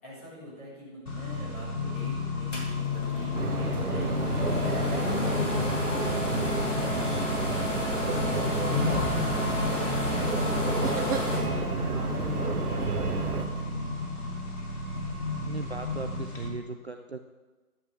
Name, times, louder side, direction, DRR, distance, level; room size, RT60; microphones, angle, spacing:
voice 1, 0.0-2.7 2.9-13.9, equal, 10° left, -9 dB, 1.9 m, -44 dB
Accelerating revving vroom, 1.1-16.5, left 4 dB, 80° left, 2.7 m, -32 dB
sound 1, 2.5-11.4, left 1 dB, 55° left, 3.5 m, -33 dB
sound 2, 3.3-13.4, right 4 dB, 90° right, 1.6 m, -31 dB
voice 2, 15.5-17.2, right 4 dB, 50° right, 7 dB, 0.5 m, -37 dB
13.5 x 11.0 x 3.4 m, 1.2 s
hypercardioid pair, 175°, 44 cm